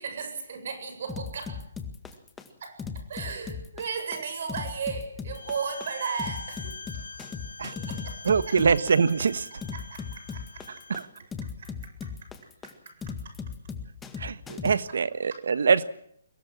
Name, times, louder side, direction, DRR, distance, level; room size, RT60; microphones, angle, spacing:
voice 1, 0.0-1.7 2.6-7.0 7.7-8.8 9.5-10.9 11.4-13.9 14.2-14.4 14.9-15.0 15.2-15.4, right 5 dB, 60° right, 8 dB, 7.8 m, -37 dB
sound 1, 1.1-14.7, left 6 dB, 10° left, 1.9 m, -37 dB
Bowed string instrument, 5.3-11.1, left 4 dB, 85° left, 1.8 m, -44 dB
voice 2, 8.2-9.5 10.9-11.0 14.2-15.8, right 5 dB, 75° right, 15 dB, 1.5 m, -23 dB
23.0 x 18.5 x 7.5 m, 0.67 s
hypercardioid pair, 150°, 0 cm